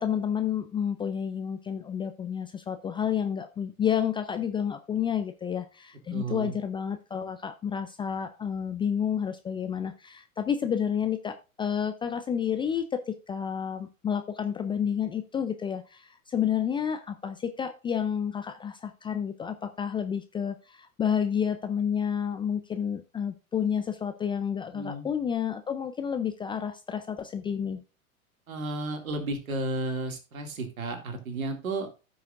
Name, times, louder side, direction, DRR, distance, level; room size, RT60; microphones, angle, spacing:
voice 1, 0.0-27.8, left 8 dB, 10° left, 8 dB, 0.4 m, -30 dB
voice 2, 6.1-6.6 24.7-25.1 28.5-31.9, right 2 dB, 75° right, 4 dB, 2.3 m, -33 dB
15.0 x 6.2 x 2.5 m, 0.31 s
figure-of-eight pair, 90°, 42 cm